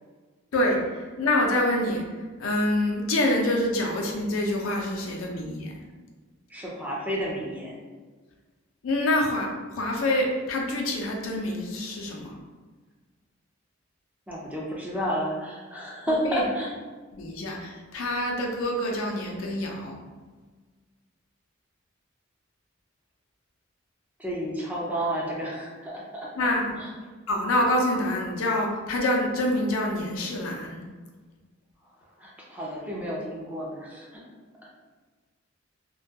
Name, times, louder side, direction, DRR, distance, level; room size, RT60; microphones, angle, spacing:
voice 1, 0.5-2.0 2.4-5.7 8.8-12.4 16.3-16.4 17.1-20.0 26.4-26.6 27.3-30.8, left 1 dB, 90° left, 0 dB, 0.5 m, -26 dB
voice 2, 6.5-7.8 14.3-16.7 24.2-26.9 32.2-34.2, equal, 10° right, -4 dB, 0.4 m, -31 dB
2.2 x 2.2 x 2.6 m, 1.4 s
head